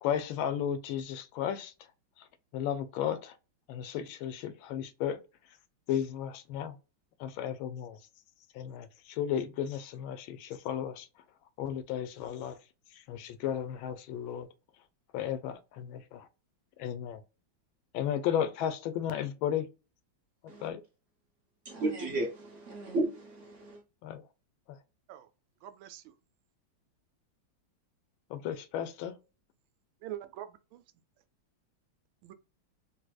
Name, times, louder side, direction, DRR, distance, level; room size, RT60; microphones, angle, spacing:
voice 1, 0.0-1.9 2.2-2.3 2.5-3.4 3.7-5.6 5.9-6.8 7.2-8.1 8.5-11.1 11.6-12.6 12.9-14.5 15.1-16.3 16.8-17.2 17.9-19.7 20.4-20.8 24.0-24.3 24.7-24.8 28.3-29.2, left 9 dB, 85° left, 1.4 m, -34 dB
voice 2, 21.6-23.8, right 2 dB, 55° right, 0.8 m, -34 dB
voice 3, 25.6-26.1 30.0-30.8 32.2-32.3, right 12 dB, 85° right, 1.4 m, -44 dB
4.1 x 2.5 x 2.3 m
omnidirectional pair, 2.1 m